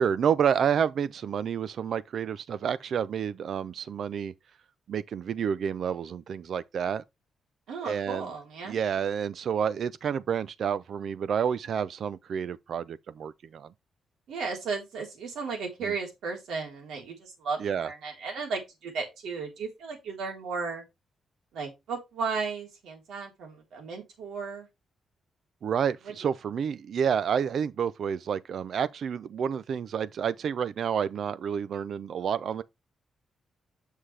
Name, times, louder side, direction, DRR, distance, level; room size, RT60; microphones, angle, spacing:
voice 1, 0.0-4.3 4.9-7.0 7.8-8.3 8.6-13.7 15.8-15.9 17.6-17.9 25.6-32.6, right 7 dB, 55° right, 0.5 m, -29 dB
voice 2, 7.7-8.8 14.3-20.8 21.5-24.7 26.1-26.2, right 5 dB, 80° right, 3.5 m, -35 dB
7.6 x 6.5 x 3.3 m
cardioid pair, 145°, 0 cm